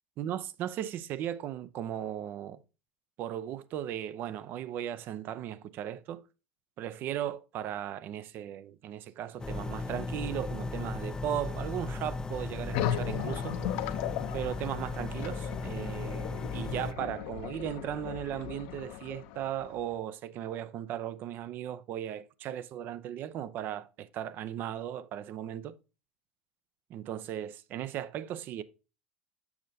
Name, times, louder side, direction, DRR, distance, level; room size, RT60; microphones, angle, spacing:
voice 1, 0.2-2.6 3.2-6.2 6.8-13.6 14.3-25.8 26.9-28.6, right 11 dB, 50° right, 0.5 m, -37 dB
sound 1, 9.4-16.9, left 3 dB, 15° left, 0.4 m, -36 dB
sound 2, 12.7-19.9, left 11 dB, 65° left, 0.7 m, -37 dB
7.1 x 6.3 x 2.7 m
hypercardioid pair, 85°, 4 cm